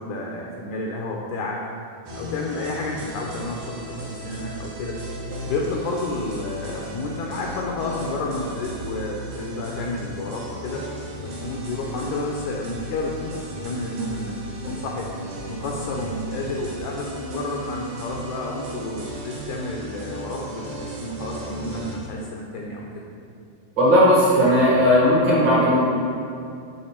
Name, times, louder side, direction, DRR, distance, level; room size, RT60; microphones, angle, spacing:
voice 1, 0.0-1.6 2.1-5.0 5.5-10.9 11.2-15.1 15.5-23.0, left 2 dB, 75° left, -1 dB, 1.8 m, -30 dB
sound 1, 2.1-22.0, equal, 75° right, 3.0 m, -35 dB
voice 2, 23.8-25.8, equal, 50° right, -7 dB, 1.5 m, -16 dB
10.5 x 4.2 x 4.4 m, 2.5 s
omnidirectional pair, 4.1 m